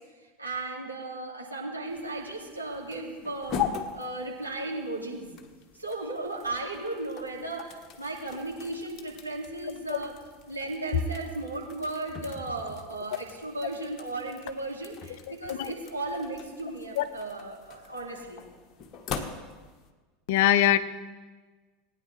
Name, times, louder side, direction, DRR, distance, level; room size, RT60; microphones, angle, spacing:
voice 1, 0.4-3.6 3.9-5.3 5.7-10.1 10.5-18.5, right 2 dB, 90° right, -3 dB, 2.5 m, -35 dB
sound 1, 1.9-19.9, left 7 dB, 40° left, 1.4 m, -41 dB
voice 2, 20.3-20.8, left 12 dB, 60° left, 13 dB, 0.7 m, -22 dB
19.0 x 9.7 x 3.3 m, 1.3 s
figure-of-eight pair, 80°, 0 cm